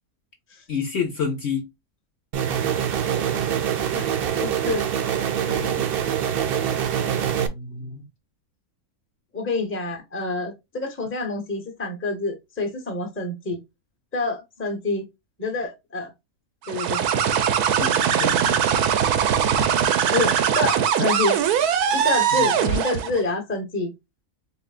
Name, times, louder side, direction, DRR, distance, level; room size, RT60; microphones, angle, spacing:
voice 1, 0.7-1.6 5.5-5.9 7.3-8.1 17.8-17.9 18.2-18.6 19.5-19.7 22.3-22.5, left 5 dB, 55° left, 0.9 m, -29 dB
sound 1, 2.3-7.5, right 9 dB, 60° right, 0.6 m, -24 dB
voice 2, 4.4-4.9 9.3-13.6 14.1-15.1 15.4-16.1 16.7-17.0 20.1-21.4 21.9-23.9, left 3 dB, 10° left, 0.8 m, -27 dB
sound 2, 16.7-23.2, right 8 dB, 85° right, 1.2 m, -21 dB
4.2 x 3.4 x 2.3 m
omnidirectional pair, 1.6 m